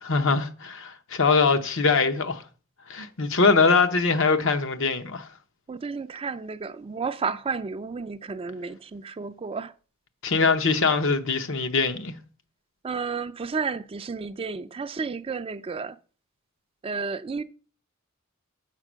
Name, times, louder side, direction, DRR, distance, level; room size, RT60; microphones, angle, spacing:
voice 1, 0.0-2.4 2.9-5.3 10.2-12.1, left 4 dB, 65° left, 0.9 m, -22 dB
voice 2, 5.7-9.7 12.8-16.0 16.8-17.4, right 5 dB, 25° right, 0.4 m, -32 dB
7.5 x 5.2 x 6.2 m
head